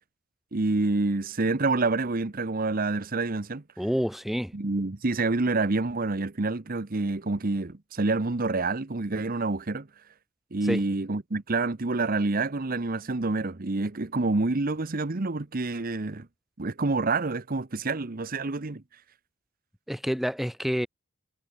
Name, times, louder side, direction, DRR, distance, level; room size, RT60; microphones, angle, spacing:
voice 1, 0.5-3.6 4.5-9.9 10.5-16.3 16.6-18.8, right 3 dB, 40° right, 0.9 m, -27 dB
voice 2, 3.8-4.5 10.6-10.8 19.9-20.9, equal, ahead, 1.2 m, -28 dB
head